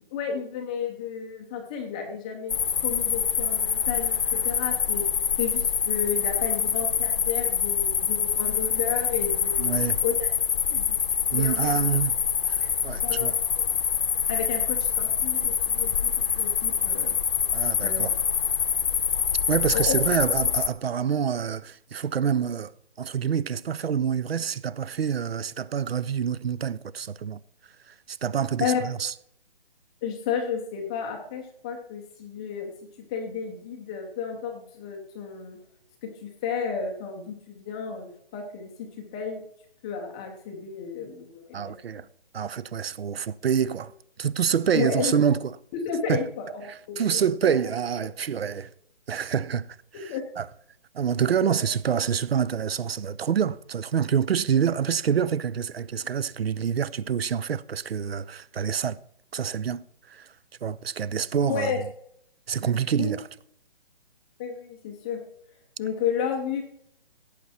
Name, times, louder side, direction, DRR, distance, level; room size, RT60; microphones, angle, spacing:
voice 1, 0.1-2.6 2.8-5.0 5.4-9.7 10.0-10.3 10.7-11.0 11.3-11.8 12.6-12.7 13.0-13.3 13.6-13.7 14.3-16.1 16.4-17.2 17.8-18.1 19.7-20.0 28.6-28.8 30.0-32.7 33.1-35.6 36.0-38.7 39.0-39.4 39.8-41.7 44.7-45.1 45.8-47.2 48.4-48.5 50.1-50.2 51.5-51.6 61.5-61.8 63.0-63.1 64.4-65.2 65.8-66.6, left 7 dB, 5° left, 0.5 m, -32 dB
sound 1, 2.5-20.7, left 7 dB, 60° left, 0.9 m, -25 dB
voice 2, 9.6-10.0 11.3-12.2 12.5-13.4 17.5-18.2 19.5-22.7 23.0-27.4 27.9-29.1 41.5-42.1 42.3-43.9 44.2-45.6 46.1-46.3 46.7-48.7 49.1-49.7 49.9-50.5 50.9-59.0 59.3-60.3 60.6-61.9 62.5-63.3, right 7 dB, 80° right, 0.7 m, -27 dB
17.0 x 8.3 x 4.3 m
hypercardioid pair, 160°, 30 cm